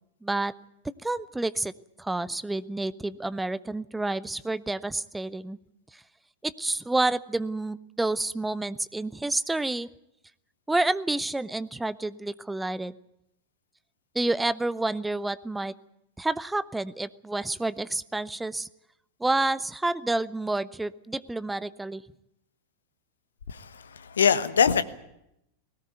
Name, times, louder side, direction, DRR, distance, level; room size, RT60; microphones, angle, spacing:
voice 1, 0.2-0.5 0.8-1.7 2.0-5.6 6.4-9.9 10.7-12.9 14.1-15.7 16.2-18.7 19.2-22.0, right 2 dB, 5° right, 0.8 m, -29 dB
voice 2, 23.5-24.8, left 7 dB, 70° left, 1.2 m, -23 dB
20.0 x 18.0 x 9.4 m
figure-of-eight pair, 90°, 0 cm